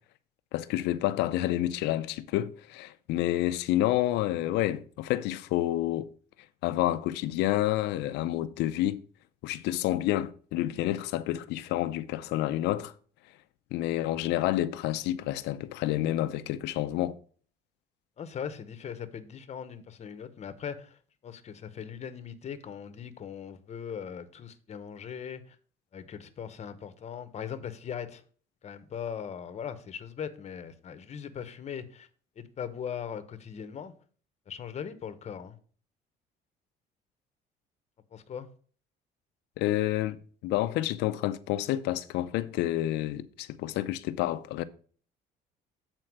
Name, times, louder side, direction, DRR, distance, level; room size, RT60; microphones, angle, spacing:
voice 1, 0.5-6.1 6.6-9.0 9.4-12.9 13.7-17.2 39.6-44.6, left 14 dB, 90° left, 0.6 m, -29 dB
voice 2, 18.2-25.6 25.9-28.2 28.6-32.1 32.4-33.9 34.5-35.6 38.1-38.5, left 8 dB, 40° left, 1.0 m, -39 dB
7.8 x 4.4 x 5.9 m
cardioid pair, 110°, 17 cm